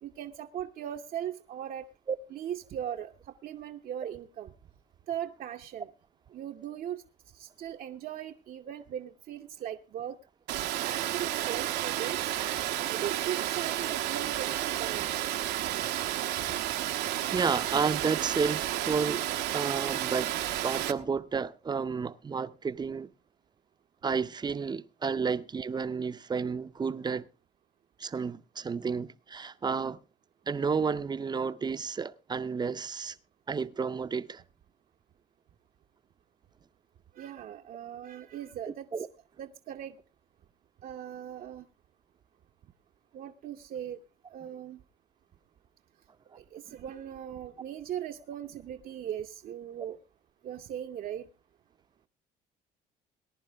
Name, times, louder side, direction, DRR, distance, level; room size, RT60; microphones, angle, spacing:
voice 1, 0.0-1.9 2.3-3.1 3.4-4.5 5.1-5.9 6.3-7.0 7.3-10.2 10.8-12.3 12.9-15.1 37.2-38.9 39.4-40.0 40.8-41.6 43.1-44.0 44.3-44.8 46.3-50.0 50.4-51.3, right 10 dB, 60° right, 0.9 m, -39 dB
Water, 10.5-20.9, right 13 dB, 85° right, 1.1 m, -31 dB
voice 2, 17.3-19.2 19.5-20.3 20.6-23.1 24.0-27.3 28.0-30.0 30.5-33.2 33.5-34.4 38.9-39.1, right 5 dB, 25° right, 0.7 m, -31 dB
19.5 x 10.5 x 3.4 m
cardioid pair, 110°, 17 cm